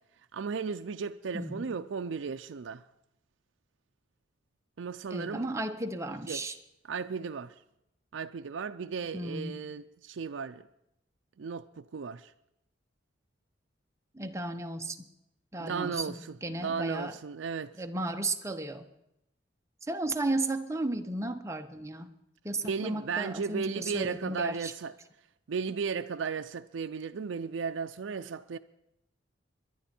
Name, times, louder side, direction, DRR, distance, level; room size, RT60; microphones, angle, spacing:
voice 1, 0.3-2.8 4.8-5.5 6.3-6.4 6.9-7.5 8.1-10.6 11.4-12.3 15.6-17.7 22.6-24.9 25.5-28.6, right 5 dB, 75° right, 0.4 m, -35 dB
voice 2, 1.3-1.7 5.1-6.6 9.1-9.6 14.1-15.1 15.5-17.2 17.8-18.9 19.9-22.1 22.4-24.7, right 2 dB, 15° right, 0.8 m, -34 dB
22.0 x 11.0 x 4.4 m
head